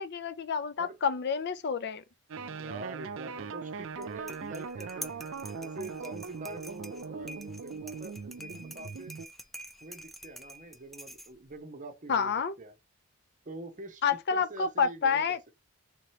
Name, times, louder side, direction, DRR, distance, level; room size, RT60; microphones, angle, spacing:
voice 1, 0.0-2.0 12.1-12.5 14.0-15.4, left 6 dB, 50° left, 0.5 m, -29 dB
sound 1, 2.3-9.3, right 5 dB, 65° right, 0.5 m, -40 dB
voice 2, 2.5-5.1 5.4-9.1 9.8-12.3 12.6-12.8 13.5-15.4, right 2 dB, 35° right, 0.8 m, -45 dB
sound 2, 3.9-11.6, equal, ahead, 0.4 m, -47 dB
3.6 x 2.9 x 3.1 m
head